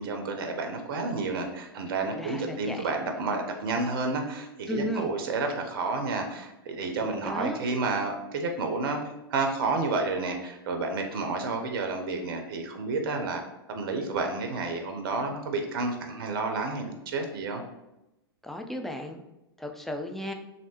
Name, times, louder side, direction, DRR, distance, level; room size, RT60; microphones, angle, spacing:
voice 1, 0.0-13.4 13.7-17.6, right 3 dB, 60° right, 4 dB, 0.5 m, -30 dB
voice 2, 2.1-2.9 4.7-5.1 6.9-7.6 18.4-19.2 19.6-20.3, equal, ahead, 4 dB, 0.3 m, -35 dB
3.2 x 2.5 x 2.9 m, 0.93 s
figure-of-eight pair, 100°, 13 cm